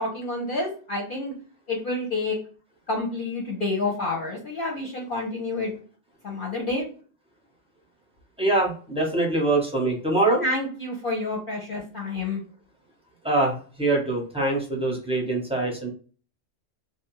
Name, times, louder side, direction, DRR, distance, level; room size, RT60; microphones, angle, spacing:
voice 1, 0.0-1.3 1.7-2.4 2.9-5.7 6.2-6.9 10.4-12.4, left 2 dB, 50° left, -2 dB, 0.7 m, -29 dB
voice 2, 8.4-10.4 13.2-15.9, right 2 dB, 5° right, -2 dB, 0.6 m, -24 dB
2.5 x 2.1 x 2.9 m, 0.40 s
omnidirectional pair, 1.3 m